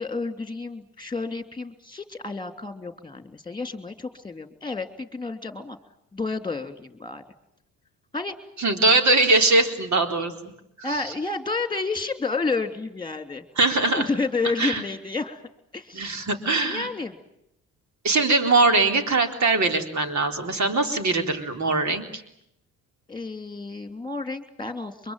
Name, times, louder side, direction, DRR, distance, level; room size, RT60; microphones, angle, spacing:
voice 1, 0.0-5.8 6.1-7.2 8.1-8.3 10.8-13.5 13.9-15.4 15.7-16.2 16.6-17.2 23.1-25.1, left 3 dB, 10° left, 8 dB, 3.1 m, -30 dB
voice 2, 8.6-10.3 13.6-14.1 14.6-14.8 15.9-16.9 18.0-22.2, right 3 dB, 50° right, 5 dB, 4.0 m, -21 dB
24.5 x 22.5 x 9.2 m, 0.78 s
supercardioid pair, 70°, 36 cm